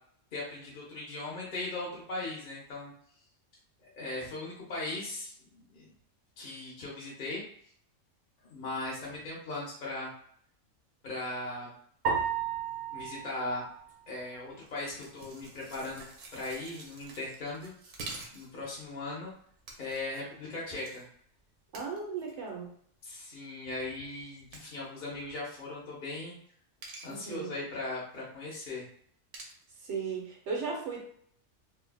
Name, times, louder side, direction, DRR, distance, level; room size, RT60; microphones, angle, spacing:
voice 1, 0.3-2.9 3.8-5.9 6.4-7.4 8.5-10.1 11.0-11.7 12.9-13.7 14.1-17.7 18.3-19.3 19.8-21.1 23.0-26.4 27.0-28.8, left 2 dB, 45° left, -5 dB, 0.9 m, -38 dB
sound 1, 12.0-14.5, right 6 dB, 40° right, 0.9 m, -34 dB
sound 2, 14.7-18.7 19.7-20.2 20.7-21.0 21.7-22.5 23.1-23.3 24.5-24.8 26.8-27.3 29.3-29.6, right 3 dB, 85° right, 1.1 m, -47 dB
voice 2, 21.7-22.7 27.1-27.5 29.8-31.0, right 5 dB, 65° right, 0 dB, 1.0 m, -36 dB
3.3 x 2.2 x 2.2 m, 0.62 s
omnidirectional pair, 1.3 m